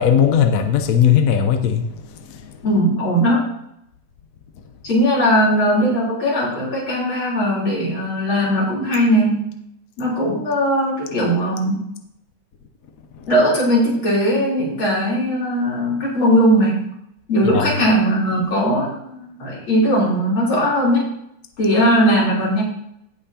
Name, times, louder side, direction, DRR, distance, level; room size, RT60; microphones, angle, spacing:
voice 1, 0.0-1.9 2.3-2.5 17.5-17.7, left 8 dB, 55° left, 5 dB, 1.0 m, -17 dB
voice 2, 2.6-3.5 4.8-9.5 10.0-11.9 13.3-16.9 17.3-21.1 21.6-22.6, equal, 75° left, -6 dB, 4.6 m, -19 dB
16.5 x 5.6 x 2.9 m, 0.75 s
omnidirectional pair, 2.2 m